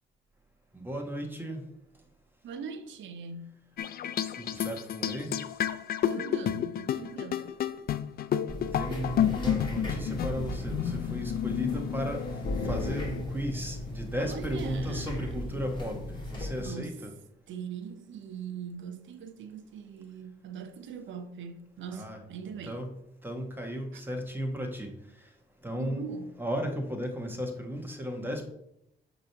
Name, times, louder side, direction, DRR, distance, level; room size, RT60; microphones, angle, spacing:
voice 1, 0.7-1.6 4.3-5.4 8.7-17.1 21.9-22.2 22.7-22.9 23.2-25.3 25.6-26.0 26.4-28.5, equal, 10° right, 1.4 m, -35 dB
voice 2, 2.4-3.6 6.1-7.5 14.2-15.7 16.6-17.0 17.5-22.8 23.9-24.0 25.8-26.4, right 6 dB, 70° right, 0.8 m, -41 dB
sound 1, 3.8-13.2, left 10 dB, 50° left, 0.4 m, -31 dB
sound 2, 8.5-16.7, left 1 dB, 25° left, 2.6 m, -36 dB
6.2 x 3.1 x 5.8 m
cardioid pair, 90°, 20 cm